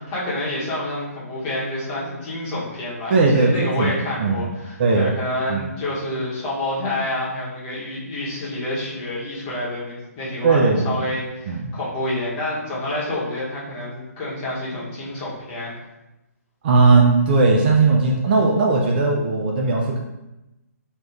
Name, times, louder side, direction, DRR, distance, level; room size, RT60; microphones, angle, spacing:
voice 1, 0.0-15.7, left 1 dB, 25° left, -7 dB, 1.0 m, -28 dB
voice 2, 3.1-3.9 4.2-4.5 4.8-5.1 5.5-5.7 10.4-11.0 11.5-11.7 16.6-20.0, right 3 dB, 35° right, -1 dB, 0.3 m, -18 dB
2.5 x 2.3 x 3.2 m, 0.98 s
figure-of-eight pair, 135°, 9 cm